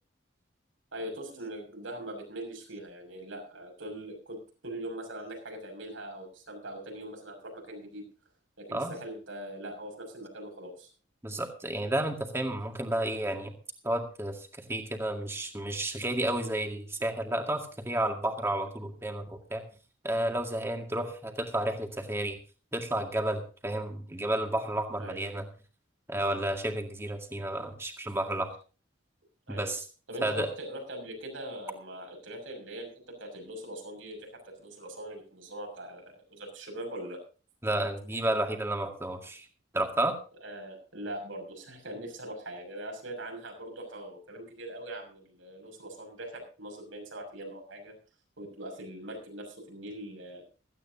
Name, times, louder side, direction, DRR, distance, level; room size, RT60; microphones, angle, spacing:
voice 1, 0.9-4.4 4.6-8.1 8.6-10.9 24.9-25.2 29.5-29.7 30.1-37.2 40.4-48.0 48.4-50.4, right 1 dB, 75° right, 3 dB, 6.4 m, -41 dB
voice 2, 11.2-13.5 13.8-19.6 20.0-22.4 22.7-25.5 26.1-28.5 29.5-29.8 30.2-30.5 37.6-39.5 39.7-40.1, right 1 dB, 15° right, 4 dB, 2.1 m, -31 dB
17.0 x 15.0 x 2.8 m, 0.36 s
head